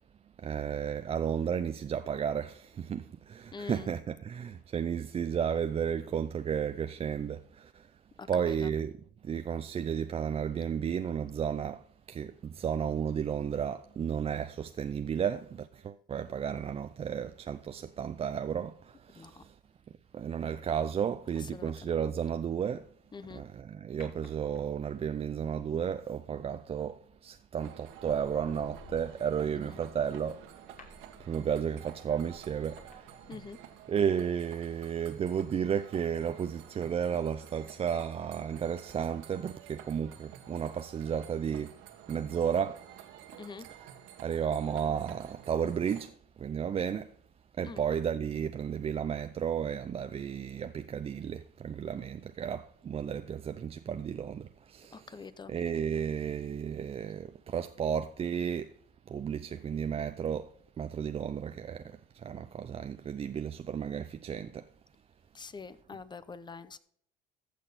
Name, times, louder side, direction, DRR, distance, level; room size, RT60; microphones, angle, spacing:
voice 1, 0.4-7.9 8.3-8.9 9.2-19.6 20.1-22.9 23.3-30.9 31.2-33.5 33.9-41.8 42.1-42.9 43.7-43.9 44.2-47.1 47.6-58.7 59.1-60.5 60.8-64.7, right 8 dB, 30° right, 0.5 m, -33 dB
voice 2, 3.5-3.9 8.2-8.5 19.2-19.3 21.5-21.9 23.1-23.4 33.3-33.6 43.4-43.7 47.7-47.8 54.9-55.5 65.3-66.8, left 4 dB, 20° left, 0.8 m, -44 dB
sound 1, 24.0-25.0 26.9-27.2 27.7-33.9 34.1-34.2, left 3 dB, 40° left, 3.0 m, -56 dB
sound 2, 27.6-46.1, right 10 dB, 75° right, 1.6 m, -51 dB
14.5 x 6.5 x 4.1 m
supercardioid pair, 100°, 21 cm